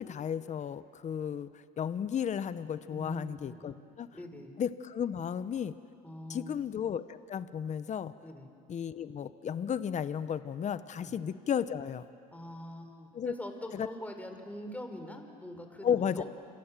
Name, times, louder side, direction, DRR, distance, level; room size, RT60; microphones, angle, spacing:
voice 1, 0.0-4.1 4.6-5.7 6.3-8.1 8.7-12.0 13.1-13.3 13.7-13.9 15.8-16.2, left 8 dB, 40° left, 13 dB, 1.0 m, -34 dB
voice 2, 2.9-3.3 3.5-3.7 4.1-4.5 6.0-6.6 8.2-8.5 11.0-11.1 12.3-16.2, left 1 dB, 10° left, 5 dB, 4.6 m, -43 dB
28.5 x 27.0 x 7.6 m, 2.5 s
supercardioid pair, 80°, 19 cm